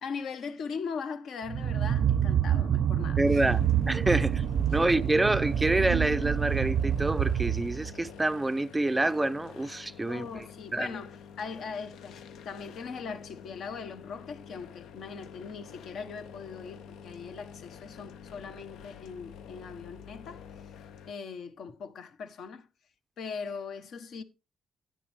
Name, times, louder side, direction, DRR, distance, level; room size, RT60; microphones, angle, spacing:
voice 1, 0.0-3.6 4.7-4.9 10.1-20.7 21.0-22.7 23.2-24.2, left 5 dB, 70° left, 1.1 m, -40 dB
sound 1, 1.5-8.0, right 9 dB, 65° right, 0.5 m, -27 dB
voice 2, 3.2-10.4 10.7-10.9, right 2 dB, 15° right, 0.4 m, -27 dB
sound 2, 3.3-21.1, left 7 dB, 85° left, 0.7 m, -48 dB
10.5 x 9.2 x 3.4 m
cardioid pair, 85°, 0 cm